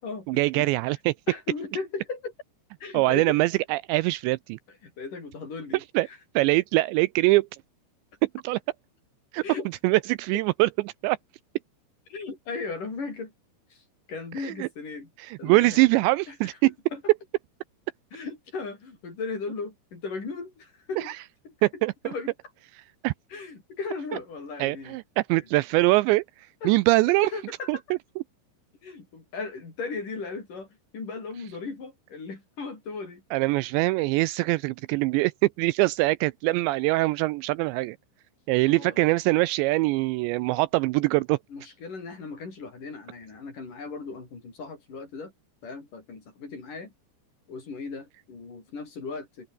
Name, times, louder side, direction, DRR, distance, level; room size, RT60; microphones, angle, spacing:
voice 1, 0.3-1.1 2.9-4.6 5.7-6.1 6.4-7.5 8.4-8.6 9.3-9.4 9.8-10.7 11.0-11.2 14.4-14.7 15.2-16.7 21.0-21.1 21.6-21.9 23.0-23.1 24.6-26.2 26.6-27.3 27.7-27.8 33.3-38.0 38.5-41.4, right 21 dB, 85° right, 2.7 m, -23 dB
voice 2, 1.3-2.3 2.8-3.4 4.8-6.2 9.4-9.7 12.1-13.3 13.7-15.1 15.4-15.8 16.3-17.0 18.1-21.1 21.4-21.5 22.0-22.3 23.3-25.0 25.4-25.5 26.6-26.7 27.2-27.8 28.8-30.7 30.9-33.2 38.7-39.1 41.5-45.3 45.6-46.9 47.5-49.5, left 4 dB, 45° left, 7.4 m, -37 dB
omnidirectional pair, 5.4 m